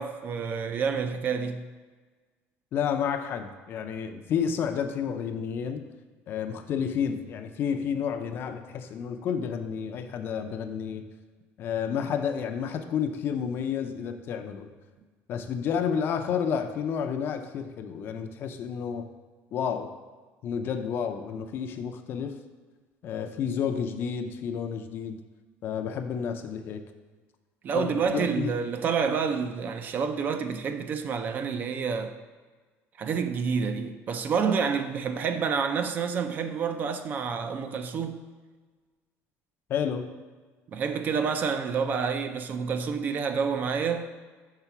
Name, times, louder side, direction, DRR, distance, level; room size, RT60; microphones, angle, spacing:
voice 1, 0.0-1.7 27.6-32.2 33.0-38.3 40.7-44.1, right 6 dB, 35° right, 0.4 m, -28 dB
voice 2, 2.7-5.8 6.3-11.0 11.6-14.7 15.3-19.1 19.5-19.9 20.4-22.4 23.0-25.2 25.6-26.8 27.7-28.5 39.7-40.0, left 7 dB, 40° left, 0.5 m, -30 dB
5.6 x 3.8 x 5.8 m
cardioid pair, 165°, 6 cm